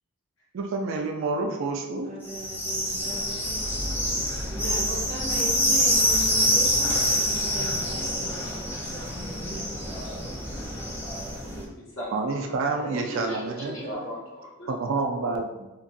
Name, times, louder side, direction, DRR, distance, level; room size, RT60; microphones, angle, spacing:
voice 1, 0.5-2.1 12.1-13.8 14.7-15.7, right 3 dB, 60° right, 4 dB, 0.3 m, -28 dB
voice 2, 2.0-3.7 4.5-10.6 13.1-14.1, right 2 dB, 35° right, -4 dB, 0.8 m, -39 dB
sound 1, 2.3-11.6, equal, 10° left, 0.5 m, -26 dB
voice 3, 11.4-14.7, equal, 65° left, -7 dB, 1.2 m, -39 dB
2.9 x 2.5 x 2.6 m, 1.0 s
head